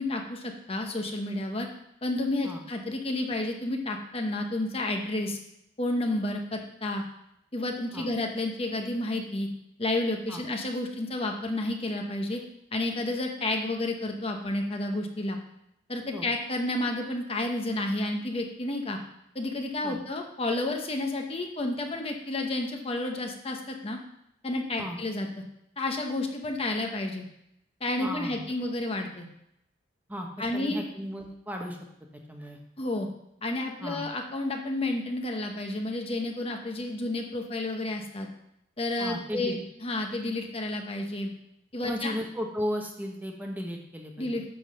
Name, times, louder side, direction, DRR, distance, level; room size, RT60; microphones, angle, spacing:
voice 1, 0.0-1.7 2.0-5.4 5.8-7.0 7.5-9.5 9.8-12.4 12.7-15.4 15.9-19.0 19.3-24.0 24.4-25.3 25.8-27.3 27.8-29.3 30.4-30.8 32.8-33.1 33.4-38.3 38.8-41.3 41.7-42.1 44.2-44.5, left 2 dB, 30° left, 3 dB, 1.0 m, -31 dB
voice 2, 28.0-28.4 30.1-31.8 32.3-32.6 33.8-34.1 39.0-39.6 41.8-44.3, equal, 10° right, 2 dB, 0.9 m, -35 dB
10.0 x 3.8 x 6.6 m, 0.79 s
head